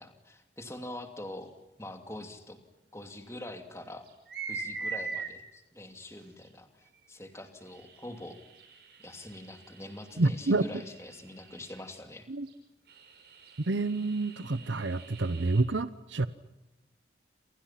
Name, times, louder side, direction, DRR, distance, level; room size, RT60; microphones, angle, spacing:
voice 1, 0.0-1.5 1.8-2.6 2.9-4.1 4.5-8.4 9.0-12.3, left 1 dB, 15° left, 5 dB, 2.7 m, -44 dB
sound 1, 2.2-2.3 3.1-3.2 4.1-5.3 6.4-6.5 7.7-12.0 12.5-12.6 12.9-15.6, right 4 dB, 60° right, 5.8 m, -43 dB
voice 2, 10.2-10.7 12.3-12.5 13.7-16.3, right 2 dB, 85° right, 13 dB, 0.9 m, -28 dB
28.5 x 28.5 x 5.9 m, 0.98 s
head